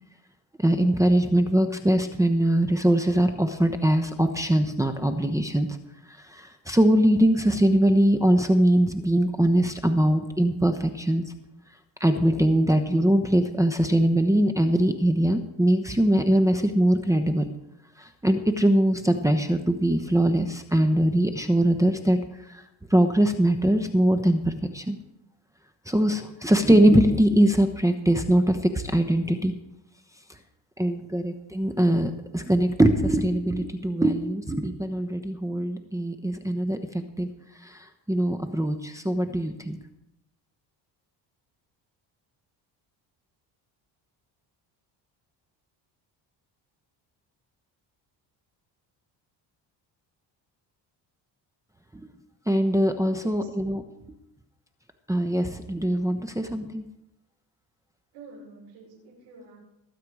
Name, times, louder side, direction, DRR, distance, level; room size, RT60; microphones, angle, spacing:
voice 1, 0.6-5.7 6.1-11.2 12.0-17.4 18.0-22.6 22.9-25.0 25.9-29.5 30.8-37.3 37.6-39.8 51.9-52.1 52.5-53.8 55.1-56.8, right 1 dB, 5° right, 4 dB, 1.0 m, -22 dB
voice 2, 58.1-59.6, right 3 dB, 85° right, -4 dB, 5.9 m, -47 dB
19.5 x 8.6 x 4.9 m, 0.88 s
cardioid pair, 100°, 44 cm